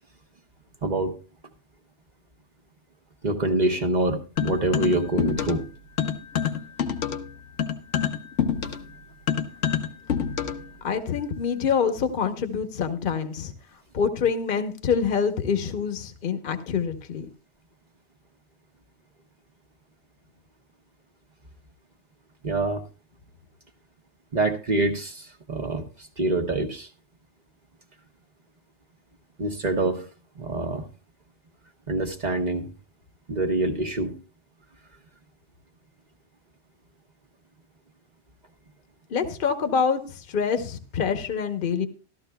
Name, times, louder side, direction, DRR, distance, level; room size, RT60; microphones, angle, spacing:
voice 1, 0.8-1.1 3.2-5.7 22.4-22.8 24.3-26.9 29.4-30.0 30.4-30.9 31.9-32.7 33.3-34.2, right 2 dB, 40° right, 4 dB, 1.0 m, -25 dB
sound 1, 4.4-5.7 6.0-10.7, left 8 dB, 90° left, 1.2 m, -27 dB
voice 2, 10.8-13.5 13.9-17.3 39.1-41.9, left 6 dB, 50° left, 8 dB, 1.1 m, -26 dB
14.0 x 12.5 x 2.3 m, 0.36 s
omnidirectional pair, 1.2 m